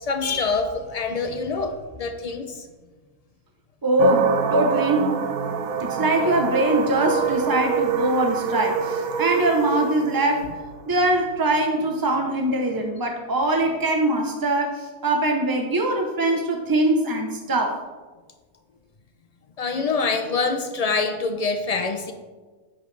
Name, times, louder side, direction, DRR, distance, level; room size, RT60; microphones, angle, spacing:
voice 1, 0.0-2.7 5.8-5.9 19.6-22.1, left 4 dB, 90° left, 7 dB, 0.3 m, -25 dB
voice 2, 3.8-5.1 5.8-10.5 10.9-17.8, right 1 dB, 30° right, 3 dB, 0.4 m, -22 dB
sound 1, 4.0-12.9, right 6 dB, 75° right, 1.2 m, -26 dB
10.5 x 8.9 x 3.3 m, 1.4 s
omnidirectional pair, 1.5 m